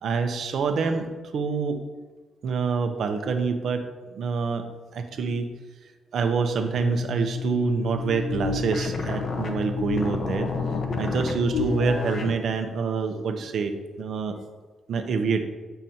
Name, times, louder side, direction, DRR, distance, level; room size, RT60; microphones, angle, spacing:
voice 1, 0.0-1.8 2.4-3.8 4.1-4.6 4.9-5.5 6.1-10.5 11.0-14.3 14.9-15.4, right 5 dB, 65° right, 6 dB, 0.8 m, -26 dB
sound 1, 6.6-12.4, left 4 dB, 50° left, 1.0 m, -29 dB
9.1 x 6.6 x 2.9 m, 1.3 s
cardioid pair, 110°, 0 cm